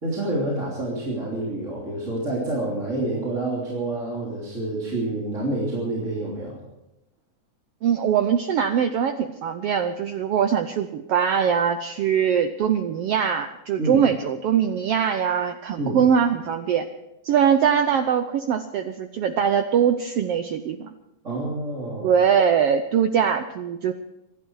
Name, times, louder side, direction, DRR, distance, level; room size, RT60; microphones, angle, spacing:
voice 1, 0.0-6.6 13.8-14.0 15.8-16.0 21.2-22.1, right 2 dB, 25° right, -5 dB, 3.3 m, -28 dB
voice 2, 7.8-16.9 17.2-20.9 22.0-23.9, right 8 dB, 90° right, 8 dB, 1.3 m, -22 dB
25.5 x 11.5 x 4.8 m, 0.91 s
omnidirectional pair, 3.7 m